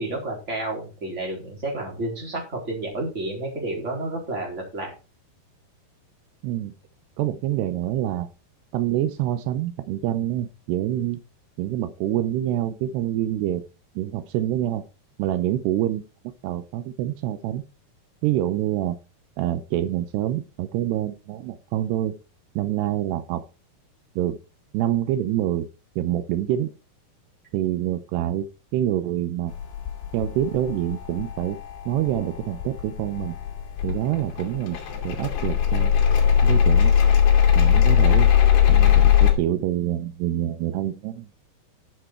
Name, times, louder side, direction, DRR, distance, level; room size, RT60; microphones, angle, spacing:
voice 1, 0.0-4.9, right 2 dB, 15° right, 0 dB, 3.8 m, -30 dB
voice 2, 6.4-6.7 7.2-8.3 8.7-11.2 11.6-13.6 14.0-14.8 15.2-16.0 16.4-17.6 18.2-19.0 19.4-22.1 22.6-23.4 24.2-24.4 24.7-25.7 26.0-26.7 27.5-28.5 28.7-29.5 30.1-31.6 31.9-33.4 33.8-34.8 35.0-35.9 36.4-36.9 37.6-38.3 38.7-41.3, right 12 dB, 85° right, 12 dB, 2.9 m, -26 dB
sound 1, 29.5-39.3, left 9 dB, 80° left, 4.3 m, -20 dB
12.5 x 6.5 x 4.5 m, 0.31 s
omnidirectional pair, 4.8 m